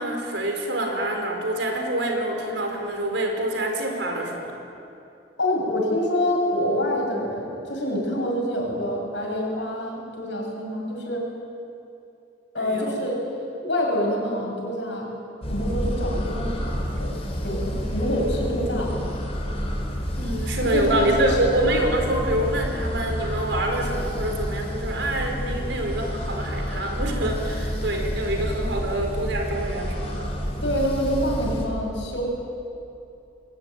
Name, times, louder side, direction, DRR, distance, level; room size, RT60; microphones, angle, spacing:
voice 1, 0.0-4.5 12.6-13.0 20.2-30.3, right 1 dB, 85° right, 3 dB, 4.6 m, -26 dB
voice 2, 5.4-11.3 12.5-13.2 13.6-15.1 15.5-17.1 17.4-19.1 20.6-21.5 30.6-32.3, equal, 80° left, -1 dB, 7.2 m, -26 dB
sound 1, 15.4-31.7, equal, 35° left, 4.4 m, -29 dB
23.0 x 19.5 x 9.4 m, 2.7 s
head